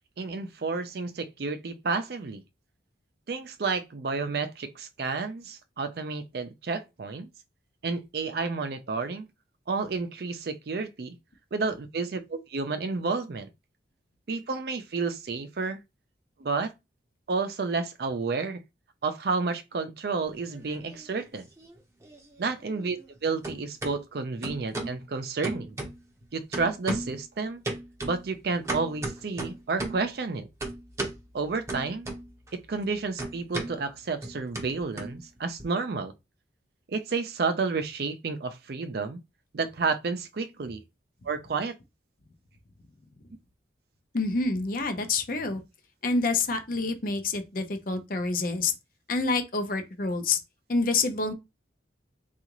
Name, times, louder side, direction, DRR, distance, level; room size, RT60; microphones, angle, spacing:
voice 1, 0.2-2.4 3.3-7.3 7.8-9.3 9.7-11.2 11.5-13.5 14.3-15.8 16.4-16.7 17.3-18.6 19.0-21.5 22.4-25.8 26.3-27.6 28.0-30.5 31.3-32.1 32.5-36.1 36.9-39.2 39.5-40.8 41.2-41.7, right 4 dB, 55° right, 0.4 m, -31 dB
sound 1, 20.3-21.3 21.6-23.2 23.4-23.9 24.4-25.0 25.4-26.2 26.5-27.2 27.6-30.1 30.6-31.2 31.7-32.5 32.8-35.6, right 2 dB, 15° right, 0.7 m, -35 dB
voice 2, 44.1-45.6 46.0-48.7 49.1-50.4 50.7-51.3, left 3 dB, 50° left, 0.6 m, -27 dB
3.7 x 2.3 x 2.9 m
head